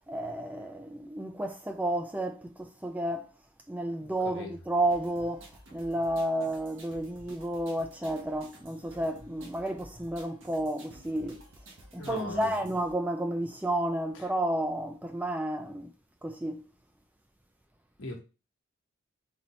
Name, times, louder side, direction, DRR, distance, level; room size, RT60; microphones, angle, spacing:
voice 1, 0.1-3.3 3.7-11.5 11.9-15.9 16.2-16.6, right 1 dB, 10° right, 0.3 m, -31 dB
sound 1, 4.9-12.9, right 1 dB, 70° right, 1.3 m, -52 dB
voice 2, 12.0-12.5 18.0-18.2, left 2 dB, 70° left, 1.3 m, -38 dB
4.4 x 4.0 x 3.1 m
head